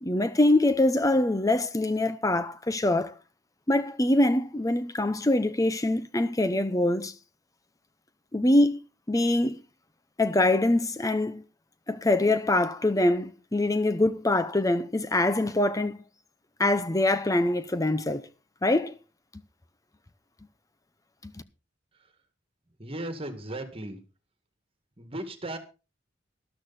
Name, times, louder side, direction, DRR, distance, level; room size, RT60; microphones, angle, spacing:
voice 1, 0.0-3.2 3.7-7.1 8.3-8.8 9.1-9.6 10.2-11.4 11.9-16.0 16.6-18.2 18.6-18.9 21.2-21.3, left 1 dB, 15° left, 0.7 m, -24 dB
voice 2, 22.8-24.0 25.0-25.6, right 1 dB, 30° right, 2.1 m, -36 dB
13.0 x 12.5 x 4.2 m
head